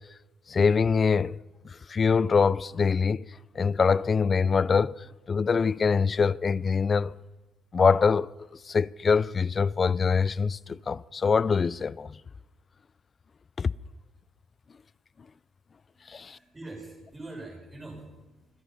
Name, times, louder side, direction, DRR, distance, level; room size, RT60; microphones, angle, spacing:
voice 1, 0.5-1.4 1.6-3.3 3.5-7.1 7.7-12.2 13.6-13.7 16.1-16.4, left 5 dB, 40° left, 0.4 m, -24 dB
voice 2, 15.9-18.6, right 2 dB, 20° right, 6.6 m, -44 dB
25.5 x 10.0 x 5.6 m
cardioid pair, 80°, 0 cm